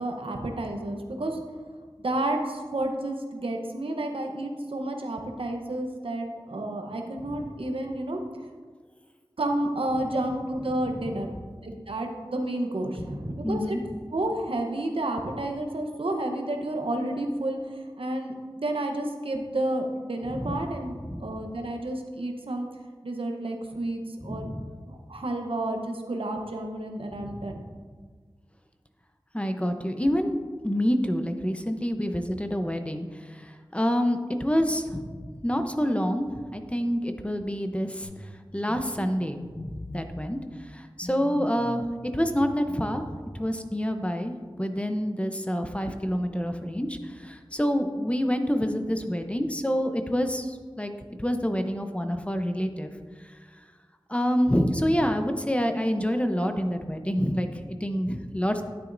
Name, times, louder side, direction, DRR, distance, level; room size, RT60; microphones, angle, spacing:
voice 1, 0.0-1.4 2.0-8.2 9.4-11.3 11.6-13.8 14.1-22.7 23.0-24.5 24.9-27.6, right 1 dB, 90° right, 3 dB, 0.9 m, -31 dB
voice 2, 13.0-13.8 20.3-20.6 21.1-21.3 24.2-24.7 27.1-27.4 29.3-30.4 30.6-38.1 38.5-40.4 40.7-41.8 42.1-50.9 51.2-52.9 54.1-58.6, equal, 15° left, 6 dB, 0.7 m, -27 dB
sound 1, 38.0-38.3 38.7-38.8 39.3-40.1 41.0-41.8 42.2-43.2, left 1 dB, 85° left, 1.2 m, -41 dB
10.5 x 9.2 x 2.6 m, 1.6 s
wide cardioid pair, 45°, 9 cm